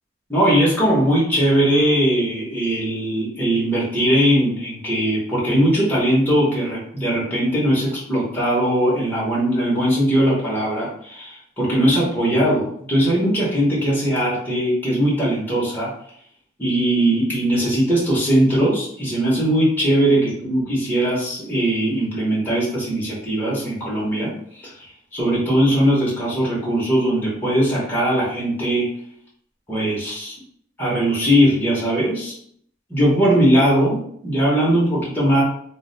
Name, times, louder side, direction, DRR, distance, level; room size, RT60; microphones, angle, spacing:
voice 1, 0.3-15.9 16.6-24.3 24.6-24.7 25.1-28.9 29.7-30.3 30.8-32.3 32.9-35.4, right 1 dB, 10° left, -7 dB, 0.8 m, -20 dB
2.3 x 2.1 x 3.7 m, 0.65 s
head